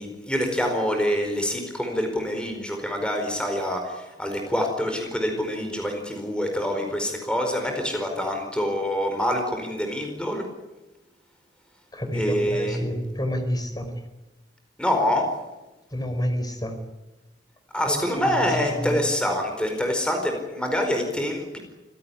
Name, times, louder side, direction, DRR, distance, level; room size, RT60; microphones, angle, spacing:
voice 1, 0.0-10.5 12.1-12.8 14.8-15.3 17.7-21.6, equal, 5° left, 3 dB, 4.6 m, -26 dB
voice 2, 11.9-13.9 15.9-16.7 18.8-19.0, equal, 20° left, 7 dB, 4.6 m, -28 dB
27.0 x 17.0 x 9.7 m, 1.1 s
head